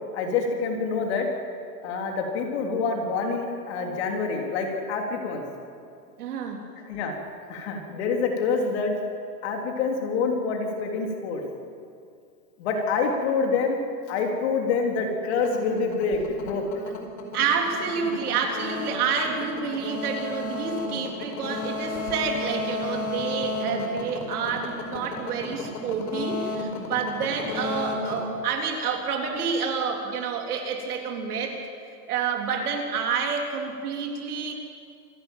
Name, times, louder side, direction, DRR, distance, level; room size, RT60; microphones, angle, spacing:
voice 1, 0.1-1.3 1.8-5.4 6.8-7.1 7.5-8.9 9.4-11.4 12.6-13.8 14.1-16.6, left 4 dB, 40° left, 2 dB, 3.5 m, -26 dB
voice 2, 6.2-6.7 17.3-31.6 32.1-34.5, right 5 dB, 65° right, 2 dB, 3.8 m, -28 dB
sound 1, 15.3-29.2, left 3 dB, 85° left, 5.1 m, -33 dB
26.5 x 12.0 x 9.2 m, 2.4 s
supercardioid pair, 170°, 49 cm